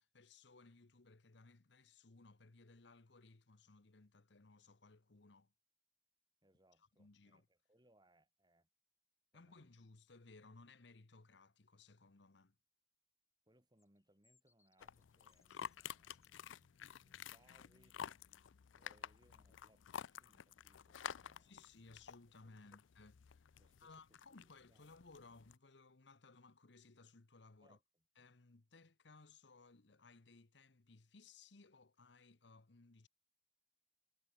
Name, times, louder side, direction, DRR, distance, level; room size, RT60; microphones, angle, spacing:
voice 1, 0.0-5.5 6.8-7.5 9.3-12.6 21.4-27.8 28.2-33.1, left 3 dB, 70° left, 1.1 m, -62 dB
voice 2, 6.4-8.7 9.3-9.7 13.5-18.0 18.7-21.7 22.5-22.8 23.6-24.9 27.6-28.0, right 1 dB, 20° right, 4.4 m, -74 dB
sound 1, 13.8-16.6, left 4 dB, 15° left, 5.2 m, -78 dB
sound 2, 14.8-25.5, left 8 dB, 85° left, 0.5 m, -52 dB
head